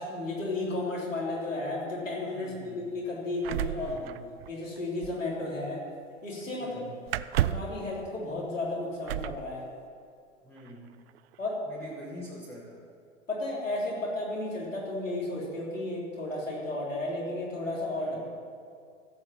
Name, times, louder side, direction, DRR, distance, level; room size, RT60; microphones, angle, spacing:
voice 1, 0.0-4.0 4.5-5.8 6.2-6.8 7.4-9.6 11.4-11.6 13.3-18.3, left 2 dB, 80° left, -4 dB, 3.5 m, -33 dB
voice 2, 2.3-2.8 3.7-4.2 6.6-7.0 10.4-10.9 11.7-12.8 18.0-18.2, equal, ahead, -10 dB, 2.6 m, -45 dB
Classic Bathroom Sequence, 3.4-4.8 5.0-5.2 7.1-7.8 9.1-9.4 10.6-10.7 11.1-11.5, right 13 dB, 55° right, 0.4 m, -31 dB
15.0 x 8.7 x 5.9 m, 2.2 s
figure-of-eight pair, 90°, 38 cm